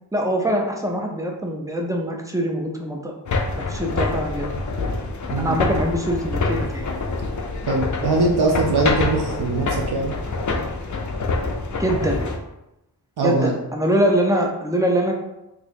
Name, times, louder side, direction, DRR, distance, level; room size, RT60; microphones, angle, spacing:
voice 1, 0.1-3.1 3.5-4.5 5.4-6.9 11.8-12.2 13.2-15.1, equal, 10° right, 1 dB, 0.5 m, -23 dB
sound 1, 3.3-12.4, left 3 dB, 45° left, 0.5 m, -26 dB
voice 2, 7.7-10.1 13.2-13.6, right 3 dB, 70° right, 0 dB, 0.5 m, -21 dB
2.8 x 2.3 x 4.2 m, 0.90 s
wide cardioid pair, 75°, 41 cm